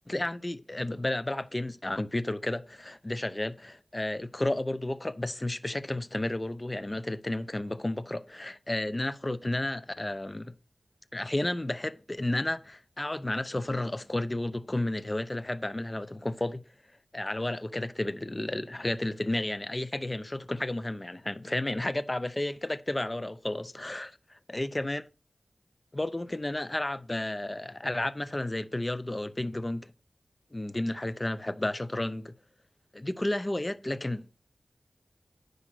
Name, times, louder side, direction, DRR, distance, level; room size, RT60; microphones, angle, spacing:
voice 1, 0.1-10.5 11.1-16.6 17.1-24.1 24.5-25.0 25.9-29.9 30.5-32.3 32.9-34.5, left 1 dB, 25° left, 0.8 m, -32 dB
9.8 x 5.5 x 6.2 m
wide cardioid pair, 60°, 0 cm